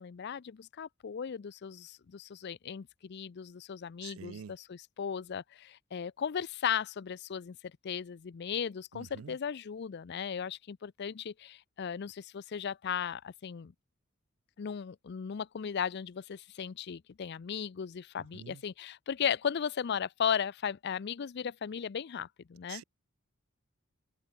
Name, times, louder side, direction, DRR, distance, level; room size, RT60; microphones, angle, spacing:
voice 1, 0.0-13.7 14.6-22.8, left 7 dB, 50° left, 0.4 m, -36 dB
voice 2, 4.0-4.5 8.9-9.4 18.3-18.6 22.7-22.8, right 7 dB, 75° right, 0.4 m, -46 dB
head